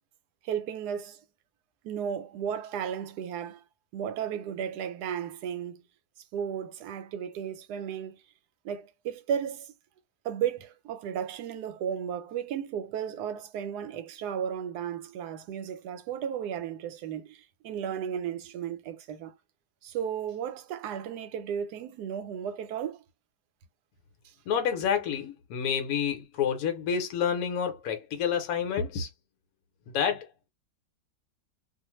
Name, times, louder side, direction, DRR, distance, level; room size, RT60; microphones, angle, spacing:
voice 1, 0.4-1.2 1.8-3.6 3.9-5.8 6.3-8.2 8.6-9.7 10.2-19.3 19.8-23.0, right 8 dB, 90° right, 1.1 m, -34 dB
voice 2, 24.5-29.1 29.9-30.5, left 7 dB, 75° left, 1.1 m, -29 dB
2.4 x 2.4 x 3.0 m
omnidirectional pair, 1.7 m